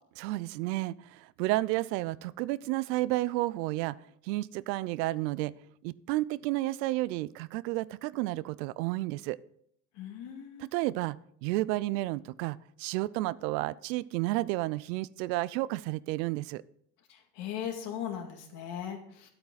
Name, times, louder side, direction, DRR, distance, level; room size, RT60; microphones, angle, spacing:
voice 1, 0.2-4.0 4.2-5.5 5.8-9.4 10.6-16.6, right 18 dB, 80° right, 19 dB, 0.6 m, -31 dB
voice 2, 9.9-10.7 17.1-19.3, left 9 dB, 55° left, 3 dB, 2.4 m, -38 dB
11.5 x 8.7 x 4.0 m, 0.68 s
supercardioid pair, 120°, 49 cm